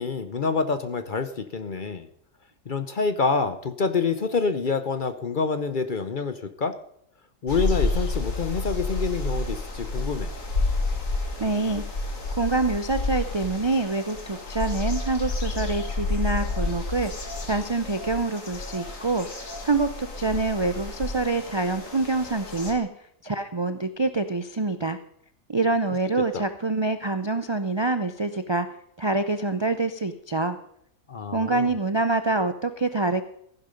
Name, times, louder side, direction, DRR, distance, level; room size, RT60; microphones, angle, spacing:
voice 1, 0.0-2.1 2.7-6.8 7.4-10.3 26.3-26.4 31.1-31.7, left 4 dB, 45° left, 10 dB, 0.8 m, -27 dB
sound 1, 7.5-22.7, left 2 dB, 65° left, 2.4 m, -30 dB
voice 2, 11.4-11.8 12.3-19.3 19.6-22.9 23.2-25.0 25.5-28.7 29.0-30.6 31.3-33.2, right 3 dB, 40° right, 9 dB, 0.4 m, -26 dB
15.0 x 10.5 x 5.2 m, 0.72 s
omnidirectional pair, 1.5 m